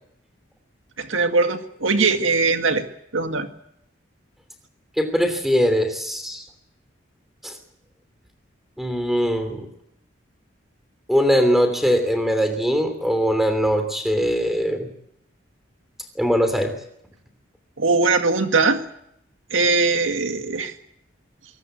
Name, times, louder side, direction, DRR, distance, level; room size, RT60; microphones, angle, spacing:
voice 1, 1.0-3.5 17.8-18.8 19.5-20.7, right 3 dB, 85° right, 7 dB, 2.0 m, -21 dB
voice 2, 5.0-6.4 7.4-7.6 8.8-9.7 11.1-14.9 16.1-16.7, equal, ahead, 8 dB, 3.0 m, -21 dB
23.0 x 18.5 x 8.0 m, 0.75 s
head